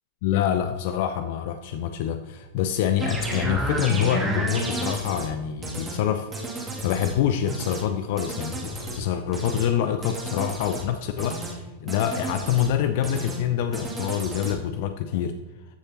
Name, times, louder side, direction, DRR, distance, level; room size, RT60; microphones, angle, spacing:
voice 1, 0.2-15.4, left 9 dB, 50° left, 9 dB, 0.5 m, -26 dB
sound 1, 3.0-5.3 5.6-6.0 6.3-7.1 7.5-7.8 8.2-9.0 9.3-9.7 10.0-10.8 11.2-11.5 11.9-12.7 13.0-13.4 13.7-14.5, right 2 dB, 20° right, 2.4 m, -31 dB
14.5 x 6.6 x 2.9 m, 1.2 s
figure-of-eight pair, 90°, 0 cm